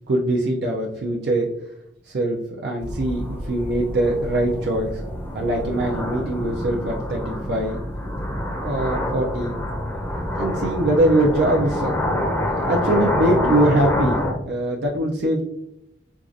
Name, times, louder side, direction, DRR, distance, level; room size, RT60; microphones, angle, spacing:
voice 1, 0.1-1.5 2.1-4.9 5.3-7.8 8.6-9.6 10.0-14.2 14.4-15.4, right 1 dB, 65° right, -2 dB, 0.5 m, -22 dB
sound 1, 2.8-14.3, left 1 dB, 15° left, 0.6 m, -26 dB
4.6 x 2.4 x 2.5 m, 0.81 s
head